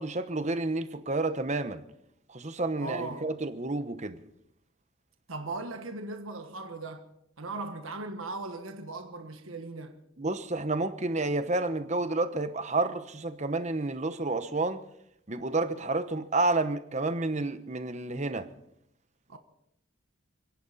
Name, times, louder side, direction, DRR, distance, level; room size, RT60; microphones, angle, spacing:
voice 1, 0.0-1.8 2.3-4.2 10.2-14.8 15.3-18.5, right 2 dB, 35° right, 1.1 m, -30 dB
voice 2, 2.8-3.3 5.3-7.1 7.4-10.0 19.3-19.4, right 3 dB, 85° right, 1.5 m, -38 dB
30.0 x 11.0 x 4.2 m
head